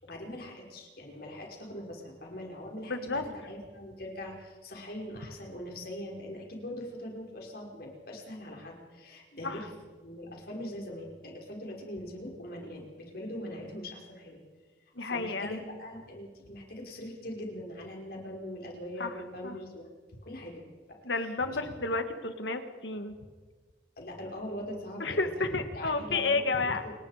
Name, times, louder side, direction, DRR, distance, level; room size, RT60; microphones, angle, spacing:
voice 1, 0.0-3.2 3.5-9.7 10.0-14.4 15.0-19.9 20.2-20.6 21.2-21.7 24.0-25.3 25.7-26.9, left 1 dB, 55° left, 0 dB, 5.2 m, -42 dB
voice 2, 2.9-3.2 9.4-9.7 15.0-15.6 19.0-19.1 19.4-19.6 21.0-23.2 25.0-26.8, left 3 dB, 75° left, 8 dB, 1.9 m, -31 dB
29.5 x 18.5 x 5.1 m, 1.5 s
head